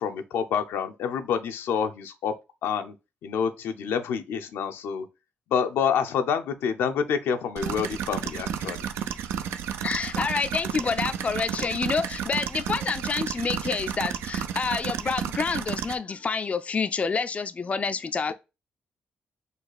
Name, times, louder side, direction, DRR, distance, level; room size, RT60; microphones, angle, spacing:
voice 1, 0.0-2.3 2.6-2.9 3.2-5.1 5.5-8.9, left 7 dB, 80° left, 0.5 m, -27 dB
sound 1, 7.6-15.9, right 8 dB, 85° right, 0.4 m, -32 dB
voice 2, 9.8-18.3, left 5 dB, 35° left, 0.3 m, -28 dB
4.0 x 2.3 x 4.6 m
cardioid pair, 70°, 4 cm